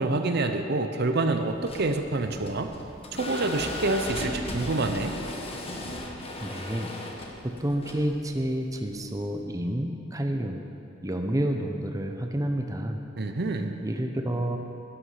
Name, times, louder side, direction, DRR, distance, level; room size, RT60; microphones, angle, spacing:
voice 1, 0.0-2.7 3.1-5.2 13.2-13.7, right 2 dB, 55° right, 7 dB, 0.8 m, -27 dB
sound 1, 1.5-9.4, left 1 dB, 30° left, 1.4 m, -37 dB
voice 2, 6.4-6.9 7.4-10.6 11.0-13.0 13.8-14.6, right 1 dB, 20° right, 4 dB, 0.8 m, -29 dB
13.0 x 11.5 x 5.8 m, 2.6 s
head